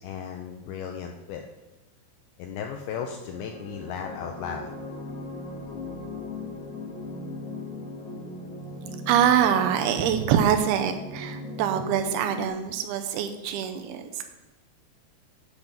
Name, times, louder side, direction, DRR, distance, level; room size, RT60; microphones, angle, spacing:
voice 1, 0.0-1.4 2.4-4.7 5.8-5.9 8.1-8.7, left 7 dB, 80° left, 3 dB, 2.2 m, -36 dB
sound 1, 2.9-12.5, left 2 dB, 60° left, 2.1 m, -38 dB
voice 2, 9.1-14.2, right 9 dB, 80° right, 7 dB, 2.3 m, -24 dB
8.3 x 7.1 x 5.2 m, 1.0 s
omnidirectional pair, 5.0 m